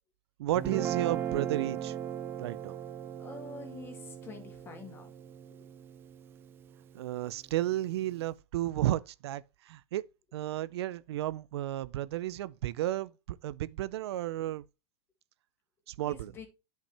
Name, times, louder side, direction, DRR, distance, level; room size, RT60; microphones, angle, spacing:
voice 1, 0.4-2.0 2.4-2.8 6.9-10.0 10.3-14.6 15.9-16.3, right 14 dB, 70° right, 0.5 m, -33 dB
Guitar, 0.6-6.9, right 9 dB, 15° right, 0.4 m, -38 dB
voice 2, 3.2-5.1 16.1-16.5, left 4 dB, 15° left, 2.0 m, -46 dB
10.0 x 5.7 x 3.3 m
supercardioid pair, 160°, 14 cm